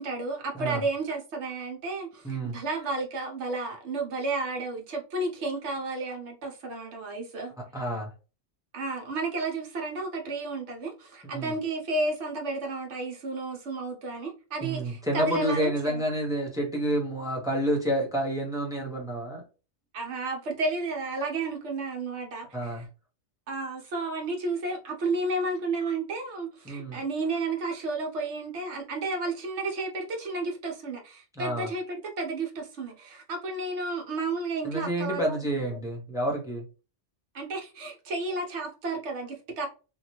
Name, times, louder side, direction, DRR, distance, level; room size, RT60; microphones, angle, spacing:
voice 1, 0.0-7.5 8.7-16.0 19.9-22.8 23.5-35.5 37.3-39.7, right 3 dB, 70° right, 1.1 m, -32 dB
voice 2, 2.2-2.6 7.6-8.1 11.3-11.5 14.6-19.4 22.5-22.9 26.6-27.0 31.4-31.7 34.6-36.7, right 1 dB, 5° right, 0.6 m, -29 dB
2.7 x 2.3 x 3.0 m
omnidirectional pair, 1.2 m